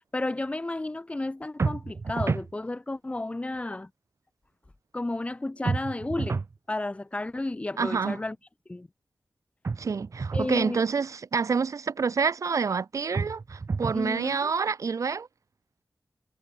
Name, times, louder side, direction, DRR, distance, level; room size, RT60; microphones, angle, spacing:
voice 1, 0.0-3.9 4.9-8.4 8.7-8.9 10.3-10.8 13.9-14.5, left 2 dB, 25° left, 1.8 m, -32 dB
sound 1, 1.6-2.5 5.7-6.5 9.6-10.5 13.1-14.1, right 4 dB, 55° right, 1.4 m, -30 dB
voice 2, 7.8-8.2 9.8-15.3, right 5 dB, 75° right, 2.2 m, -28 dB
wide cardioid pair, 95°, 6 cm